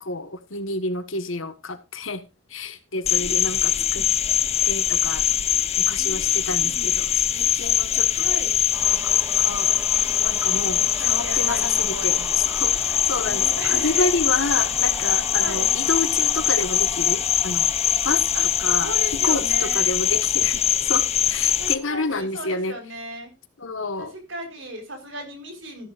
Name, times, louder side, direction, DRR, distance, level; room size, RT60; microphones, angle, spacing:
voice 1, 0.0-2.2 2.5-4.1 4.6-5.2 5.8-8.3 9.0-9.7 10.2-17.7 18.0-18.3 18.6-22.7 23.6-24.1, left 3 dB, 80° left, 1.6 m, -29 dB
Cricket, 3.1-21.8, left 9 dB, 30° left, 0.6 m, -22 dB
voice 2, 3.1-4.1 6.0-6.9 8.1-8.5 11.0-12.4 13.2-14.0 15.4-15.7 18.3-18.5 18.8-19.9 21.6-23.3 24.0-25.9, right 1 dB, 70° right, 4.7 m, -36 dB
sound 1, 8.7-22.3, right 1 dB, 10° right, 1.1 m, -40 dB
13.5 x 12.0 x 2.5 m
head